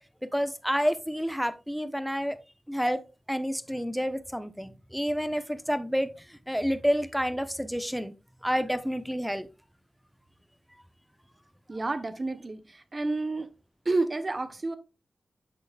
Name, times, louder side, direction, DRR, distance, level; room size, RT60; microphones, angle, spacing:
voice 1, 0.2-2.4 2.7-3.0 3.3-8.1 8.4-9.5, equal, ahead, 1.1 m, -29 dB
voice 2, 11.7-13.5 13.8-14.8, right 2 dB, 45° right, 1.1 m, -30 dB
8.7 x 6.4 x 2.5 m
cardioid pair, 40°, 0 cm